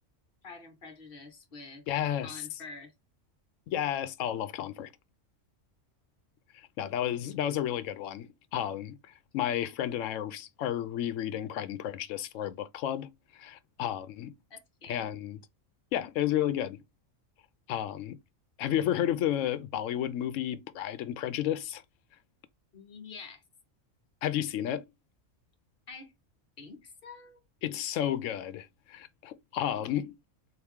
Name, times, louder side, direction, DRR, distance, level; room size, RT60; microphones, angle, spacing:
voice 1, 0.4-1.8 2.2-2.9 3.7-3.8 14.5-15.1 22.7-23.4 25.9-26.1 26.6-27.4, left 4 dB, 45° left, 1.3 m, -47 dB
voice 2, 1.9-2.4 3.7-4.9 6.5-14.3 14.9-15.4 15.9-16.8 17.7-18.2 18.6-21.8 24.2-24.9 27.6-30.2, left 11 dB, 80° left, 0.9 m, -32 dB
3.6 x 3.0 x 3.5 m
omnidirectional pair, 1.3 m